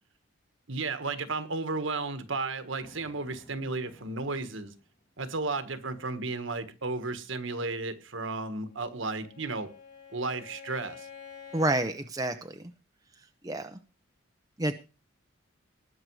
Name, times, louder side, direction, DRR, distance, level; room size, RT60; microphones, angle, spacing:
voice 1, 0.7-4.7 5.2-9.7 10.1-11.1, right 3 dB, 65° right, 10 dB, 1.5 m, -33 dB
Thunder, 2.8-5.3, equal, 20° left, 2.7 m, -58 dB
Bowed string instrument, 8.7-11.9, left 7 dB, 45° left, 4.9 m, -49 dB
voice 2, 11.5-12.6 13.4-13.8 14.6-14.7, right 1 dB, 15° right, 6 dB, 0.7 m, -29 dB
20.0 x 6.6 x 4.8 m, 0.32 s
head